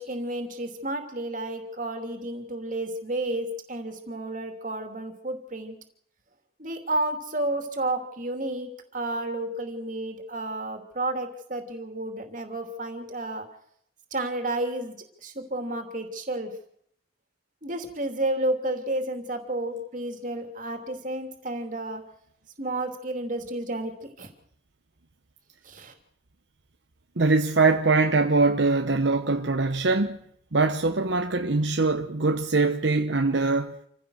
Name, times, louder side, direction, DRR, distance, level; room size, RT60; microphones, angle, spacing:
voice 1, 0.0-5.7 6.6-13.5 14.1-15.0 15.2-16.5 17.6-22.0 22.6-24.3 25.6-25.9, right 1 dB, 45° right, 3.0 m, -31 dB
voice 2, 27.2-30.2 30.5-33.8, right 3 dB, 70° right, 1.0 m, -22 dB
27.5 x 15.5 x 6.5 m
head